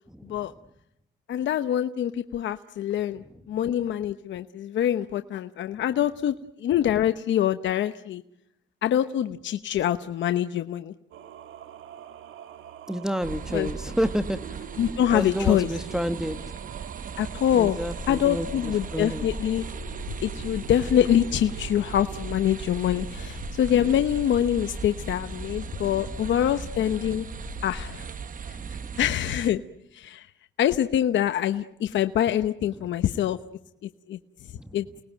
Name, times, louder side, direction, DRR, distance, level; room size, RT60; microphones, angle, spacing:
voice 1, 1.3-6.3 6.6-8.2 8.8-10.9 13.5-13.7 14.8-15.7 17.2-17.8 18.1-19.6 20.2-27.3 27.6-28.1 28.5-28.6 29.0-29.6 29.9-30.3 30.6-33.4 34.1-34.2 34.7-34.9, left 10 dB, 70° left, 9 dB, 0.9 m, -25 dB
Singing, 11.1-22.3, right 9 dB, 80° right, 2.0 m, -44 dB
voice 2, 12.9-14.4 15.1-16.4 17.5-19.2 25.8-25.9 28.6-29.0 34.6-34.7, equal, 5° right, 9 dB, 1.2 m, -29 dB
sound 1, 13.2-29.5, right 6 dB, 45° right, 1.0 m, -38 dB
sound 2, 18.0-28.0, left 6 dB, 45° left, 1.3 m, -42 dB
29.0 x 19.5 x 9.2 m, 0.85 s
cardioid pair, 90°, 20 cm